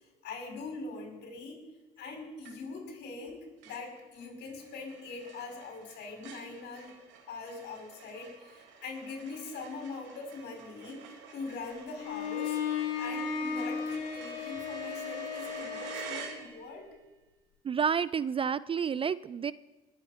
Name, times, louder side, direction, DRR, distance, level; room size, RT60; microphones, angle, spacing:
voice 1, 0.2-1.6 2.0-6.9 7.3-11.0 11.3-12.6 13.0-16.9, left 4 dB, 60° left, 2 dB, 5.4 m, -42 dB
sound 1, 2.4-2.9 3.2-3.3 3.6-16.9, right 6 dB, 65° right, 2.6 m, -49 dB
Bowed string instrument, 12.0-16.4, left 6 dB, 80° left, 3.1 m, -35 dB
voice 2, 17.6-19.5, right 7 dB, 25° right, 18 dB, 0.4 m, -30 dB
21.0 x 8.9 x 5.1 m, 1.1 s
hypercardioid pair, 70°, 20 cm